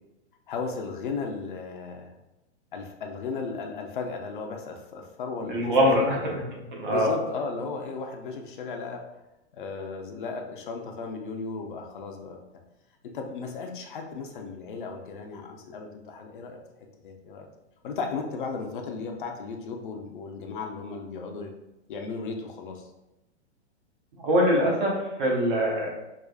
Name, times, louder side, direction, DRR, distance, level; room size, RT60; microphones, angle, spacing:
voice 1, 0.5-2.1 2.7-6.1 6.9-9.0 9.5-12.4 13.0-16.6 17.0-17.5 17.8-21.5 21.9-22.9, left 4 dB, 45° left, 3 dB, 0.5 m, -35 dB
voice 2, 5.5-6.4 6.7-7.1 24.2-25.9, equal, 45° right, -2 dB, 0.9 m, -23 dB
4.7 x 2.4 x 2.3 m, 0.95 s
hypercardioid pair, 175°, 36 cm